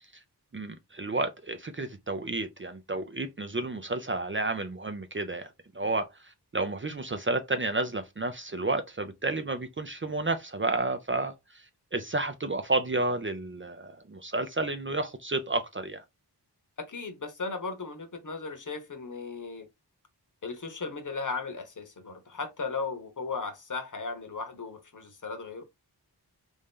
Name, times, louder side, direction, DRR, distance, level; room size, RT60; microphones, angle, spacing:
voice 1, 0.5-5.5 5.7-6.1 6.5-11.3 11.9-16.0, right 2 dB, 30° right, 0.5 m, -31 dB
voice 2, 16.8-19.7 20.4-25.6, left 4 dB, 50° left, 0.9 m, -36 dB
3.2 x 2.7 x 3.6 m
wide cardioid pair, 75°, 40 cm